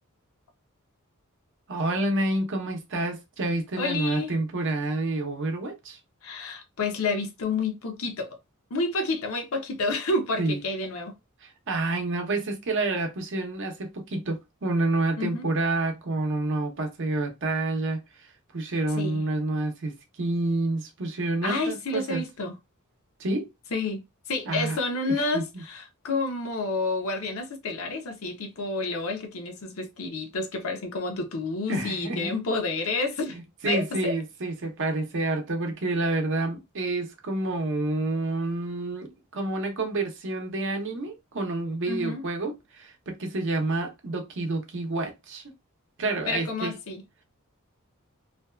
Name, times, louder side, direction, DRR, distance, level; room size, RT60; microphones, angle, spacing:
voice 1, 1.7-6.0 10.4-10.6 11.4-18.3 18.5-22.2 23.2-23.5 24.5-24.8 25.1-25.6 31.7-32.3 33.3-45.4 46.0-46.7, right 2 dB, 60° right, 0.7 m, -29 dB
voice 2, 3.8-4.3 6.2-8.4 8.7-11.1 15.2-15.5 19.0-19.2 21.4-22.5 23.7-33.4 33.6-34.2 41.9-42.2 46.3-47.0, left 3 dB, 70° left, 0.6 m, -29 dB
2.5 x 2.2 x 2.2 m
head